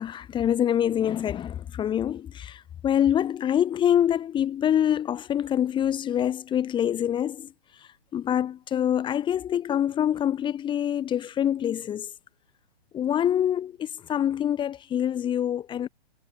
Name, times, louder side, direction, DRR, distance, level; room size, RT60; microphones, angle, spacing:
voice 1, 0.0-7.5 8.1-12.1 12.9-15.9, left 10 dB, 15° left, 1.8 m, -25 dB
hypercardioid pair, 150°, 32 cm